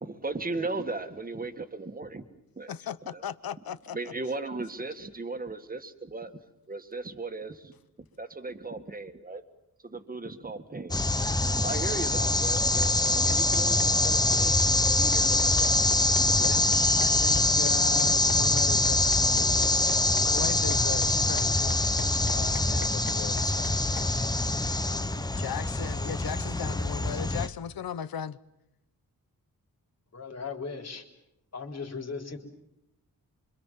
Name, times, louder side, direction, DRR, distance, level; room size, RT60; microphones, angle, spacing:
voice 1, 0.0-2.2 2.6-2.7 3.1-3.2 3.9-6.3 6.7-9.4 9.8-16.8, right 3 dB, 25° right, 1.9 m, -37 dB
voice 2, 2.7-4.0 16.4-21.9 22.2-23.8 24.8-28.4, left 9 dB, 85° left, 1.1 m, -38 dB
sound 1, 10.9-27.5, left 2 dB, 10° left, 1.0 m, -24 dB
sound 2, 12.7-24.1, left 7 dB, 60° left, 1.4 m, -44 dB
voice 3, 30.1-31.0 31.5-32.4, left 5 dB, 45° left, 4.0 m, -37 dB
26.0 x 25.5 x 7.5 m
wide cardioid pair, 135°, 35 cm